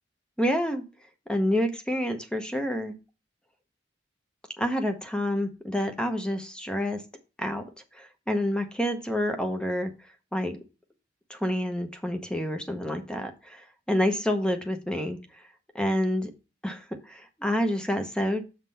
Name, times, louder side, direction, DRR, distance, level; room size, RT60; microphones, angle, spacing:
voice 1, 0.4-0.8 1.3-2.9 4.6-7.0 7.4-7.6 7.9-9.9 10.3-10.6 11.3-15.2 15.7-16.3 16.6-18.4, equal, 5° left, 6 dB, 0.8 m, -28 dB
7.3 x 3.7 x 5.5 m, 0.30 s
head